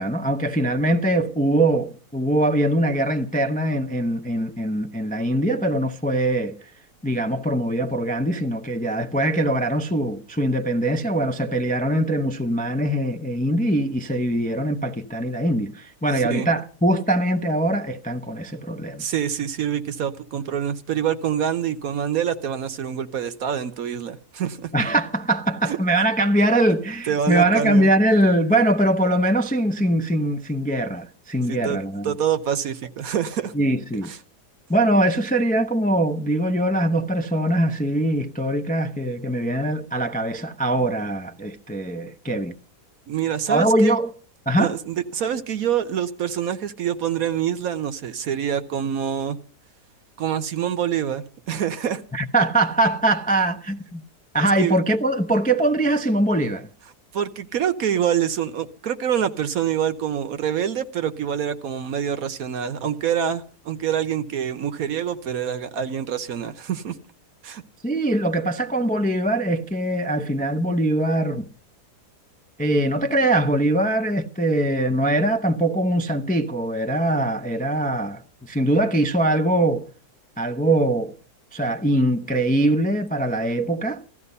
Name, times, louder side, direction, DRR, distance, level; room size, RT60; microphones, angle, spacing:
voice 1, 0.0-6.6 7.0-19.1 24.7-32.1 33.5-34.1 34.7-42.5 43.5-44.1 44.5-44.7 52.1-54.0 54.3-56.7 67.8-71.5 72.6-79.9 80.4-81.1 81.5-84.0, right 1 dB, 10° left, 0.4 m, -22 dB
voice 2, 19.0-24.7 25.7-25.8 27.1-27.9 31.5-31.8 32.0-33.5 34.0-34.2 43.1-44.0 44.6-49.4 50.2-52.0 54.6-54.8 57.1-67.0 67.4-67.6, right 9 dB, 65° right, 1.3 m, -26 dB
16.0 x 13.5 x 5.5 m
omnidirectional pair, 1.8 m